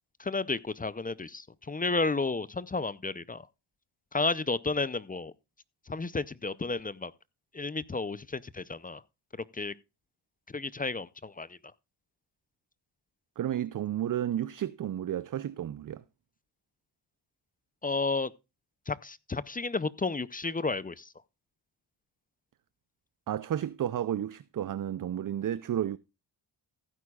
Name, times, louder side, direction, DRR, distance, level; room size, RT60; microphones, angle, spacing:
voice 1, 0.2-3.5 4.1-5.3 5.9-7.1 7.5-9.0 9.5-9.7 10.5-11.6 17.8-18.3 18.9-21.1, left 3 dB, 20° left, 0.5 m, -32 dB
voice 2, 13.4-16.0 23.3-26.0, right 11 dB, 45° right, 0.5 m, -32 dB
15.5 x 9.5 x 2.3 m
cardioid pair, 80°, 47 cm